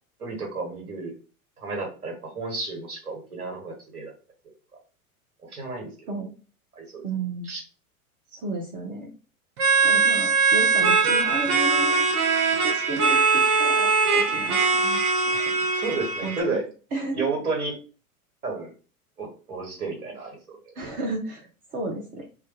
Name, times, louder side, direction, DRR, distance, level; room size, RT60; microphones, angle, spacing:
voice 1, 0.2-1.1 1.6-4.1 5.5-6.1 6.8-7.1 7.4-7.6 15.3-16.6 17.1-17.8 18.4-18.7 19.2-20.6, right 3 dB, 85° right, 0 dB, 1.2 m, -32 dB
voice 2, 7.0-7.5 8.3-9.1 9.8-12.0 12.6-15.0 15.5-15.6 16.2-16.6 16.9-17.3 20.8-22.2, right 2 dB, 20° right, 0 dB, 0.4 m, -33 dB
sound 1, 9.6-16.4, right 4 dB, 45° right, 0.7 m, -21 dB
2.2 x 2.1 x 2.9 m, 0.35 s
figure-of-eight pair, 90°, 43 cm